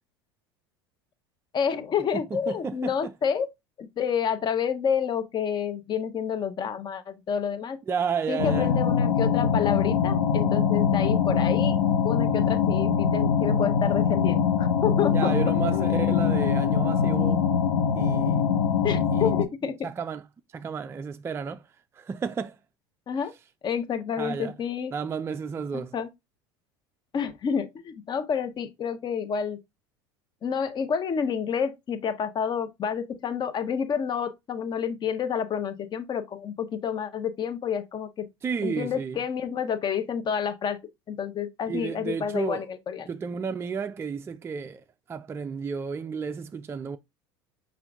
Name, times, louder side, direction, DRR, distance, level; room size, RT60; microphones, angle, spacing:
voice 1, 1.5-3.5 3.8-7.8 8.3-11.8 12.0-15.4 15.7-15.9 18.8-19.8 23.1-23.3 23.6-24.9 25.7-26.1 27.1-29.6 30.4-38.3 38.6-40.8 41.1-43.1, left 7 dB, 35° left, 0.8 m, -29 dB
voice 2, 2.1-3.1 7.9-8.7 15.1-17.5 18.0-18.4 18.9-19.3 19.8-20.2 20.5-21.6 22.0-22.6 24.2-24.5 24.9-25.9 38.4-39.2 41.7-42.6 43.0-44.8 45.1-47.0, right 6 dB, 20° right, 0.4 m, -32 dB
sound 1, 8.4-19.4, left 7 dB, 85° left, 0.7 m, -23 dB
5.7 x 2.5 x 3.4 m
hypercardioid pair, 80°, 13 cm